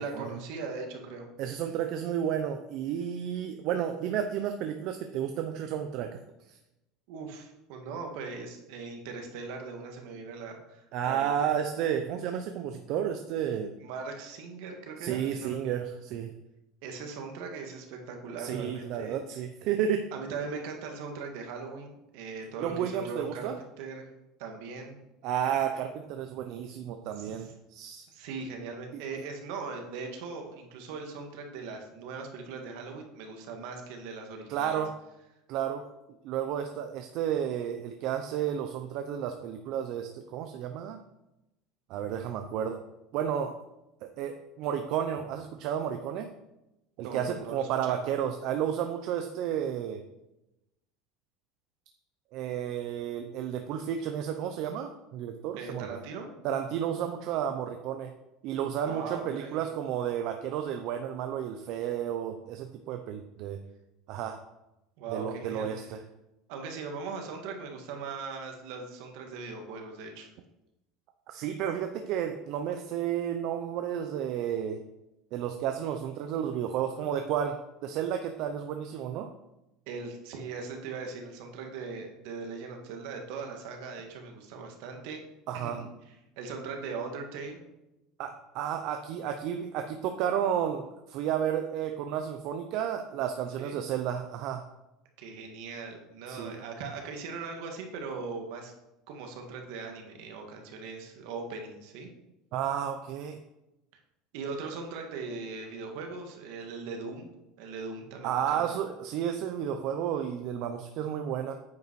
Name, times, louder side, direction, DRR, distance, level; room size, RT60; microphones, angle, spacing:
voice 1, 0.0-1.3 7.1-11.3 13.8-15.6 16.8-19.2 20.1-23.5 23.8-24.1 24.4-25.0 27.2-27.5 28.1-34.8 47.0-48.0 55.6-56.3 58.8-59.6 65.0-65.7 66.5-70.3 79.9-85.2 85.5-85.9 86.4-87.6 93.6-93.8 95.2-98.7 99.1-102.1 104.3-107.3 107.6-108.6, right 4 dB, 70° right, 3 dB, 1.8 m, -39 dB
voice 2, 1.4-6.2 6.5-6.6 10.9-13.7 15.0-16.3 18.4-20.1 22.6-23.6 25.2-28.1 34.5-34.9 35.5-35.8 36.2-41.0 41.9-42.8 43.1-43.5 44.0-46.3 47.0-50.0 52.3-55.9 56.4-58.1 58.4-63.6 64.1-64.4 65.1-66.0 71.3-74.8 75.3-79.3 85.5-85.8 88.2-94.6 96.3-96.6 102.5-103.4 108.2-111.5, right 9 dB, 55° right, 6 dB, 0.6 m, -32 dB
9.2 x 5.4 x 4.7 m, 0.93 s
cardioid pair, 145°, 0 cm